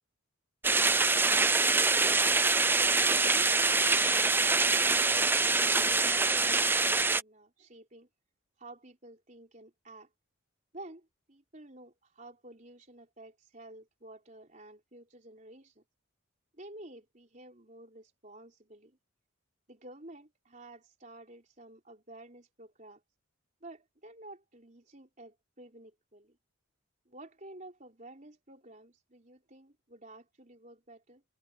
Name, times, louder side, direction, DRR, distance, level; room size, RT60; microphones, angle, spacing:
sound 1, 0.6-7.2, right 3 dB, 10° right, 0.4 m, -25 dB
voice 1, 3.2-8.1 8.6-10.1 10.7-15.8 16.5-19.0 19.7-23.0 23.6-26.4 27.1-31.2, right 1 dB, 35° right, 4.2 m, -51 dB
head